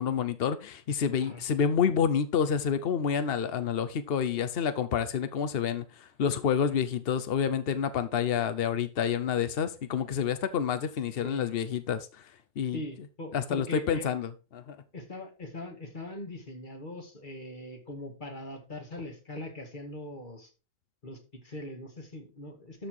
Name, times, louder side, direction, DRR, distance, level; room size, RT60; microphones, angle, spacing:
voice 1, 0.0-12.8 13.3-14.8, left 7 dB, 75° left, 0.5 m, -29 dB
voice 2, 11.2-11.5 12.7-14.1 14.9-20.5 21.0-22.9, left 1 dB, 25° left, 2.2 m, -41 dB
12.5 x 4.4 x 4.7 m
omnidirectional pair, 1.9 m